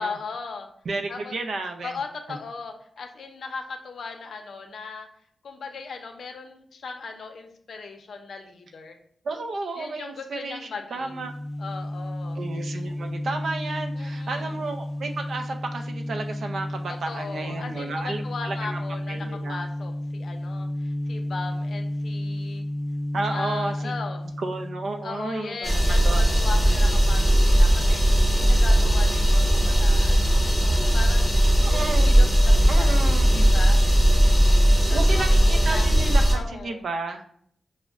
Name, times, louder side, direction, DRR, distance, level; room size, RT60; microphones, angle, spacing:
voice 1, 0.0-0.7 1.1-1.4 1.8-5.1 5.4-9.0 9.8-11.2 11.6-12.4 13.9-14.5 17.1-22.6 23.3-24.2 25.0-28.0 28.3-31.3 31.7-32.9 33.3-33.8 34.9-36.1 36.3-36.8, left 4 dB, 75° left, 5 dB, 0.5 m, -37 dB
voice 2, 0.9-2.0 2.3-2.4 9.2-11.3 12.3-18.8 19.1-19.7 23.1-23.9 24.4-26.2 31.6-32.2 32.7-33.6 34.9-37.2, right 3 dB, 75° right, 5 dB, 0.4 m, -32 dB
sound 1, 11.0-25.6, left 1 dB, 15° left, 0.6 m, -32 dB
sound 2, 25.6-36.3, right 1 dB, 5° right, 1.1 m, -18 dB
6.0 x 2.1 x 2.3 m, 0.64 s
wide cardioid pair, 105°, 0 cm